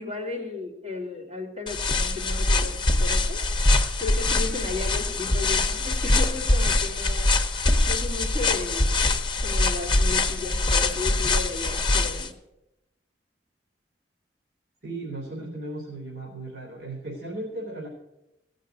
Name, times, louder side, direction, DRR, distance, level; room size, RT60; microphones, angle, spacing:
voice 1, 0.0-7.3 7.9-9.1 9.4-12.3, left 3 dB, 35° right, -1 dB, 2.8 m, -35 dB
sound 1, 1.7-12.3, left 2 dB, 25° left, 0.9 m, -23 dB
voice 2, 14.8-17.9, right 2 dB, 65° right, -3 dB, 3.3 m, -36 dB
17.0 x 6.6 x 8.3 m, 0.90 s
head